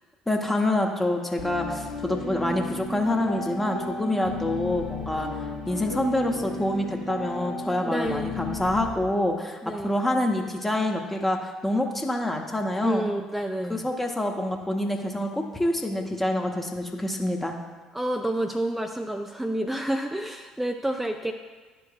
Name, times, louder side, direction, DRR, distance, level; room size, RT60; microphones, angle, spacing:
voice 1, 0.3-5.3 5.7-13.1 13.7-17.5, left 1 dB, 10° left, 2 dB, 0.8 m, -27 dB
sound 1, 1.4-9.0, left 2 dB, 80° left, 1.3 m, -34 dB
voice 2, 7.8-8.3 9.6-9.9 12.8-13.9 17.9-21.3, right 1 dB, 5° right, 4 dB, 0.4 m, -29 dB
11.0 x 4.6 x 2.3 m, 1.4 s
figure-of-eight pair, 55°, 2 cm